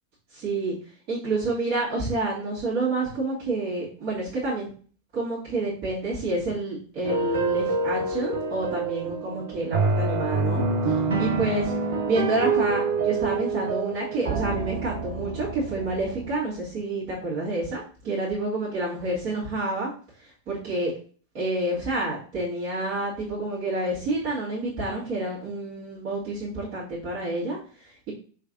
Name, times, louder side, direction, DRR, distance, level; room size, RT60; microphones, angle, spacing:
voice 1, 0.3-0.7 1.1-4.7 5.1-10.6 10.8-11.7 12.1-19.9 20.2-20.9 21.3-28.1, right 2 dB, 40° right, -9 dB, 1.7 m, -29 dB
sound 1, 7.0-16.4, right 3 dB, 65° right, 0.7 m, -27 dB
4.7 x 3.2 x 2.6 m, 0.42 s
figure-of-eight pair, 90°, 0 cm